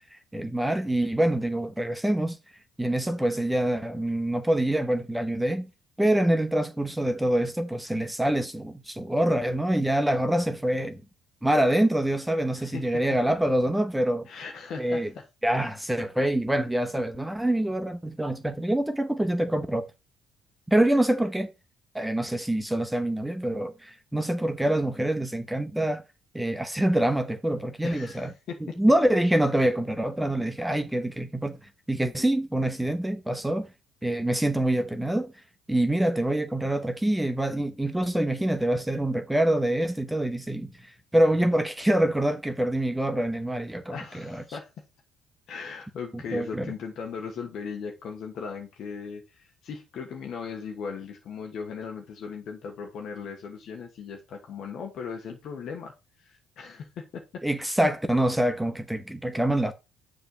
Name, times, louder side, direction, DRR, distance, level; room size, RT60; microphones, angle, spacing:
voice 1, 0.3-2.4 2.8-5.7 6.0-11.0 11.4-14.4 14.8-15.1 15.4-19.9 20.7-21.5 21.9-26.0 26.3-28.3 28.6-31.6 31.9-33.7 34.0-35.3 35.7-40.7 41.1-44.4 46.1-46.7 57.4-59.7, right 1 dB, 5° right, 0.9 m, -25 dB
voice 2, 12.5-13.0 14.3-15.2 27.8-28.8 43.9-44.8 45.5-55.9 56.2-57.4, left 6 dB, 60° left, 1.2 m, -38 dB
6.9 x 3.3 x 6.0 m
hypercardioid pair, 65°, 0 cm